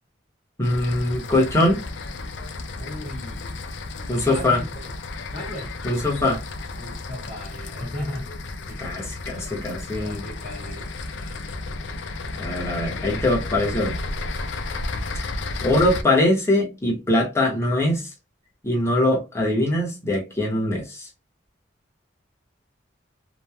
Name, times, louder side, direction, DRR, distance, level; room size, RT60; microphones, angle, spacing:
sound 1, 0.6-16.0, left 3 dB, 75° left, 0.4 m, -33 dB
voice 1, 0.6-1.8 4.1-4.6 5.8-6.4 8.8-10.3 12.4-14.0 15.1-15.3 15.6-18.1 18.6-21.1, left 1 dB, 15° left, 0.9 m, -22 dB
voice 2, 2.8-3.6 4.1-4.9 5.3-5.7 6.8-8.3 8.7-9.0 10.0-11.4, left 1 dB, 45° left, 1.3 m, -36 dB
3.0 x 2.2 x 2.2 m
head